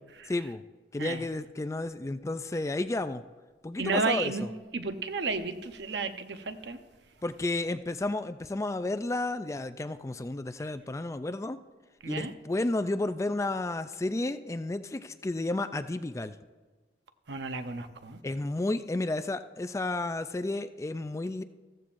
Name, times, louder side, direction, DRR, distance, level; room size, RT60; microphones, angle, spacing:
voice 1, 0.3-0.6 0.9-3.2 3.6-4.5 7.2-11.6 12.1-16.4 18.2-21.4, left 2 dB, 15° left, 0.3 m, -32 dB
voice 2, 3.8-4.5 4.7-6.8 12.0-12.3 17.3-18.2, right 4 dB, 80° right, 0.8 m, -32 dB
14.5 x 14.0 x 2.6 m
head